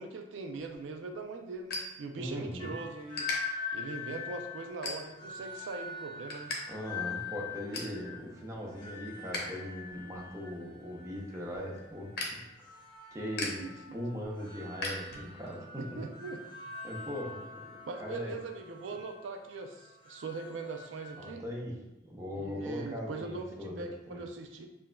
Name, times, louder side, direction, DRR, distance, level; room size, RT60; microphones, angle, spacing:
voice 1, 0.0-3.3 3.7-6.5 13.4-13.7 15.7-16.4 17.9-21.4 22.3-24.7, right 3 dB, 85° right, 5 dB, 0.4 m, -41 dB
sound 1, 0.6-2.6 2.9-3.4 3.9-4.2 4.7-5.4 5.8-6.6 6.9-7.0 7.3-8.0 8.4-9.4 9.8-15.6, left 2 dB, 55° left, 0.8 m, -40 dB
voice 2, 2.2-2.7 6.7-12.4 13.1-15.6 15.9-16.0 16.8-17.7 18.0-18.3 21.2-21.7 22.0-24.2, equal, 15° right, -2 dB, 0.6 m, -39 dB
sound 2, 2.6-21.3, left 5 dB, 25° left, 0.6 m, -44 dB
5.6 x 2.5 x 2.2 m, 0.93 s
head